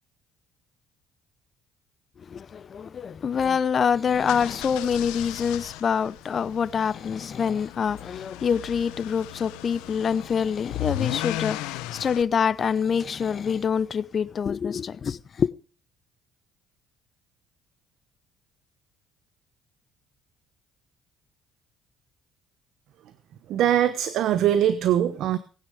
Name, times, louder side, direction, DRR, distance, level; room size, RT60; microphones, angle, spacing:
voice 1, 2.2-15.5, left 7 dB, 45° left, 0.8 m, -26 dB
sound 1, 4.1-12.2, left 15 dB, 85° left, 1.1 m, -36 dB
voice 2, 23.5-25.4, right 10 dB, 70° right, 1.1 m, -22 dB
19.5 x 9.4 x 5.0 m
supercardioid pair, 75°, 0 cm